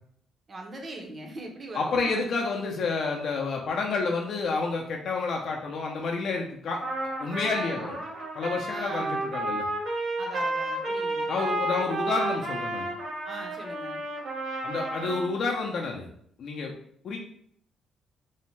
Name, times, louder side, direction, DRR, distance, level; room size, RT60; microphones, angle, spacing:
voice 1, 0.5-2.2 7.4-8.0 8.7-9.2 10.2-11.3 13.2-14.0, right 2 dB, 40° right, 1 dB, 0.6 m, -40 dB
voice 2, 1.7-6.8 7.2-7.9 8.3-9.7 11.3-12.9 14.6-16.1 16.4-16.7 17.0-17.2, left 4 dB, 65° left, 0 dB, 0.4 m, -29 dB
Trumpet, 6.8-15.3, right 2 dB, 55° right, 1.0 m, -31 dB
2.6 x 2.1 x 3.1 m, 0.65 s
cardioid pair, 90°, 0 cm